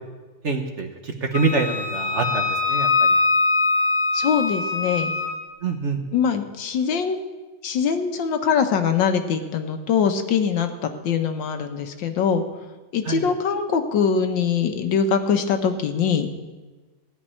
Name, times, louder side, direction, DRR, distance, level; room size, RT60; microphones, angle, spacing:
voice 1, 0.4-3.2 5.6-6.0 13.0-13.2, right 4 dB, 45° right, 4 dB, 1.2 m, -25 dB
Wind instrument woodwind instrument, 1.3-5.4, left 3 dB, 55° left, 1.8 m, -22 dB
voice 2, 4.1-5.1 6.1-7.2 7.6-12.4 12.9-16.3, left 6 dB, 80° left, 7 dB, 1.7 m, -22 dB
16.0 x 5.4 x 9.8 m, 1.3 s
omnidirectional pair, 2.0 m